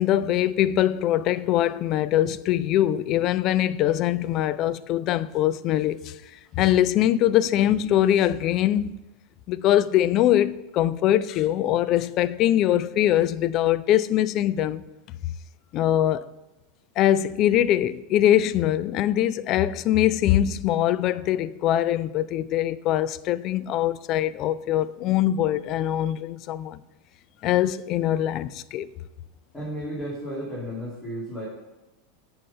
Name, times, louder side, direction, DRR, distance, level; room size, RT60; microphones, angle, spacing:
voice 1, 0.0-6.2 6.5-9.0 9.5-14.9 15.7-16.3 17.0-26.8 27.4-28.9, left 12 dB, 40° left, 0.3 m, -22 dB
voice 2, 29.5-31.4, equal, 15° left, 2.5 m, -33 dB
7.5 x 5.5 x 5.5 m
figure-of-eight pair, 85°, 0 cm